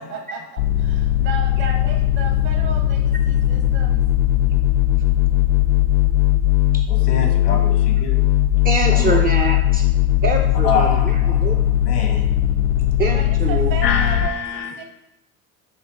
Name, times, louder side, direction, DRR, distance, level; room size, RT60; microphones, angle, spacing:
voice 1, 0.0-4.0 13.1-14.8, right 6 dB, 50° right, 3 dB, 1.1 m, -33 dB
sound 1, 0.6-14.3, left 13 dB, 70° left, 0.6 m, -18 dB
voice 2, 6.9-8.2 8.9-9.3 10.6-11.5 11.8-12.3 13.8-14.7, left 5 dB, 85° left, 3 dB, 1.0 m, -25 dB
voice 3, 8.6-9.8 10.2-11.6 13.0-13.7, right 4 dB, 20° right, 1 dB, 0.3 m, -24 dB
5.5 x 2.5 x 3.6 m, 0.83 s
hypercardioid pair, 75°, 46 cm